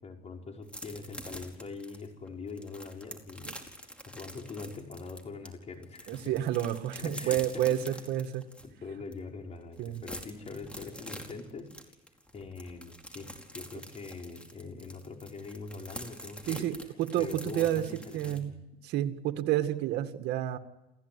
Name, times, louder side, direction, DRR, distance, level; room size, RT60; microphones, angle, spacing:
voice 1, 0.0-3.5 4.1-6.4 7.0-8.1 8.6-11.7 12.3-16.7 17.2-18.6, left 4 dB, 40° left, 2 dB, 5.5 m, -43 dB
sound 1, 0.7-5.5 5.8-8.7 9.1-9.2 9.5-18.4, equal, 5° left, 4.8 m, -45 dB
voice 2, 6.1-8.4 9.8-10.0 16.5-17.9 18.1-18.6 18.8-20.6, right 12 dB, 80° right, 7 dB, 2.0 m, -30 dB
29.5 x 17.0 x 9.8 m, 0.98 s
cardioid pair, 110°, 17 cm